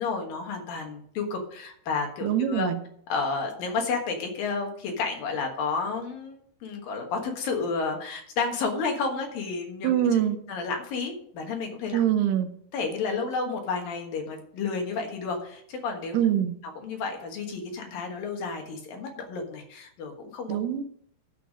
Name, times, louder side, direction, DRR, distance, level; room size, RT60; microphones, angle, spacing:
voice 1, 0.0-2.7 3.1-10.0 10.5-12.0 12.7-16.2 16.8-20.6, left 4 dB, 65° left, 3 dB, 2.9 m, -31 dB
voice 2, 2.2-2.8 9.8-10.4 11.9-12.5 16.1-16.6 20.5-20.8, right 10 dB, 80° right, 10 dB, 2.6 m, -24 dB
13.0 x 5.7 x 6.2 m, 0.64 s
omnidirectional pair, 4.9 m